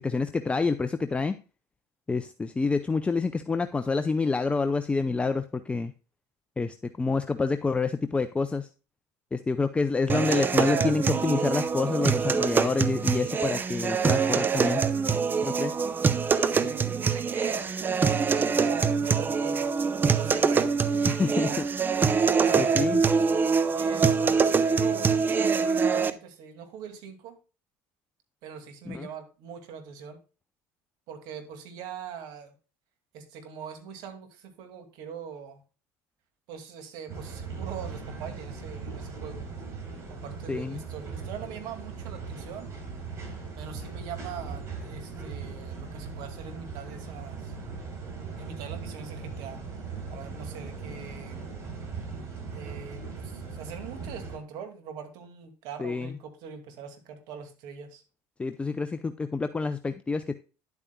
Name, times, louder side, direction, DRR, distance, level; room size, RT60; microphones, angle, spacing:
voice 1, 0.0-1.4 2.1-5.9 6.6-8.7 9.3-14.8 15.4-15.7 21.1-21.7 22.6-23.0 28.9-29.1 40.5-40.8 55.8-56.2 58.4-60.3, left 4 dB, 15° left, 9 dB, 0.6 m, -28 dB
sound 1, 10.1-26.1, right 5 dB, 25° right, 0.7 m, -24 dB
voice 2, 16.5-19.7 20.1-20.7 21.2-21.6 22.4-22.8 23.7-27.4 28.4-30.2 31.1-32.5 33.1-35.6 36.5-39.4 40.1-42.7 43.6-47.5 48.4-49.6 50.1-51.4 52.5-58.0, right 7 dB, 70° right, 6 dB, 2.3 m, -42 dB
sound 2, 37.1-54.4, right 5 dB, 40° right, 4.0 m, -39 dB
10.5 x 8.4 x 2.3 m, 0.33 s
supercardioid pair, 105°, 7 cm